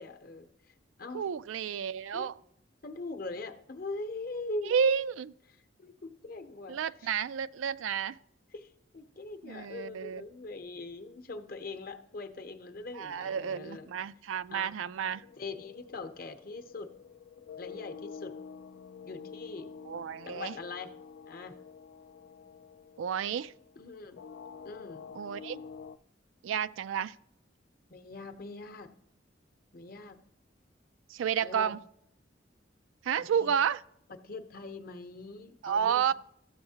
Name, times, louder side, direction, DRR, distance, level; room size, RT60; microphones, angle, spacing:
voice 1, 0.0-1.2 2.1-2.3 2.8-4.7 5.8-7.1 8.5-13.9 14.5-14.7 15.4-16.9 17.6-18.3 19.0-19.7 20.3-20.9 21.3-21.6 23.8-24.2 24.6-25.1 27.9-28.9 29.7-30.2 31.4-31.8 33.2-33.5 34.2-36.1, left 3 dB, 50° left, 0.8 m, -42 dB
voice 2, 1.1-2.3 4.7-5.3 6.7-8.2 9.4-10.2 12.9-15.2 19.9-20.5 23.0-23.5 25.2-25.6 26.4-27.2 31.1-31.8 33.0-33.8 35.6-36.1, right 7 dB, 90° right, 0.3 m, -31 dB
sound 1, 15.1-26.0, left 6 dB, 80° left, 0.4 m, -48 dB
13.5 x 7.9 x 2.8 m
head